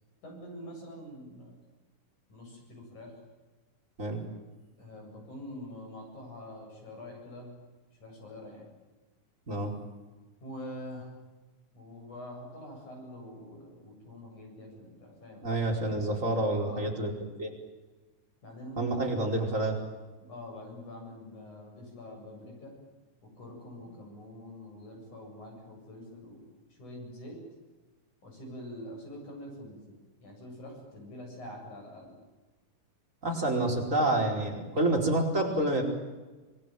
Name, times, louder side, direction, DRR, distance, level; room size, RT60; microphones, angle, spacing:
voice 1, 0.2-1.6 2.3-3.2 4.8-7.5 8.0-8.7 10.4-11.1 11.7-15.6 16.6-16.9 18.4-19.1 20.2-22.8 23.2-26.5 26.8-27.4 28.2-29.8 30.2-32.1 33.5-33.6, left 1 dB, 80° left, 1 dB, 9.6 m, -45 dB
voice 2, 9.5-9.8 15.4-17.1 17.4-17.5 18.8-19.8 33.2-35.8, right 2 dB, 25° right, 0 dB, 5.2 m, -28 dB
26.0 x 20.5 x 9.1 m, 1.2 s
omnidirectional pair, 3.4 m